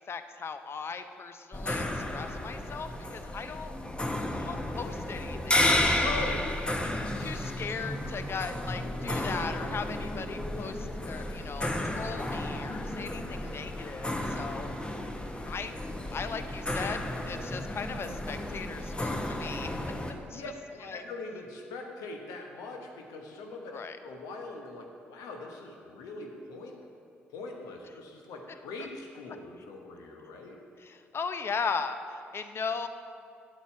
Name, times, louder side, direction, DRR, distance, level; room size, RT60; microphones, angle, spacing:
voice 1, 0.1-3.8 4.4-6.3 7.2-14.7 15.5-15.7 16.1-20.0 20.3-20.4 20.8-21.0 23.7-24.0 30.8-32.9, left 5 dB, 40° left, 9 dB, 0.6 m, -38 dB
sound 1, 1.5-20.1, left 1 dB, 15° left, 1.0 m, -32 dB
voice 2, 6.0-6.5 20.3-20.5 20.8-26.8 27.3-30.6, left 3 dB, 70° left, 2 dB, 1.1 m, -41 dB
8.9 x 8.3 x 4.5 m, 2.4 s
hypercardioid pair, 45°, 6 cm